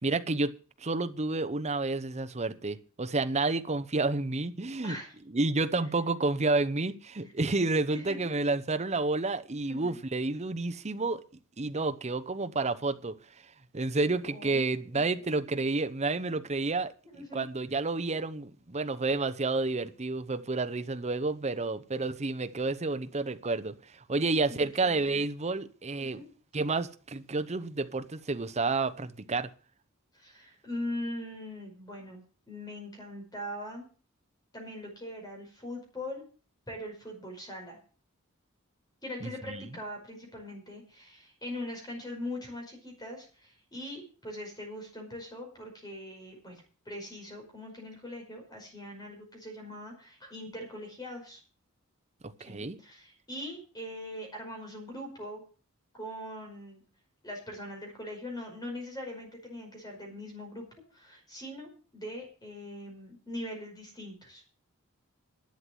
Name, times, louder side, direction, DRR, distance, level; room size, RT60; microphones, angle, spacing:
voice 1, 0.0-5.0 5.3-11.2 11.6-13.2 13.7-16.9 17.3-26.2 26.5-29.5 39.2-39.7 52.2-52.8, right 3 dB, 30° right, 0.8 m, -30 dB
voice 2, 7.9-8.4 9.7-10.0 14.3-15.2 17.1-17.5 24.5-25.2 26.0-26.3 30.1-32.2 32.5-33.9 34.5-36.2 36.7-37.8 39.0-51.4 52.5-55.4 55.9-56.8 57.2-60.7 60.9-64.4, left 1 dB, 20° left, 5.2 m, -41 dB
11.5 x 7.9 x 7.5 m
head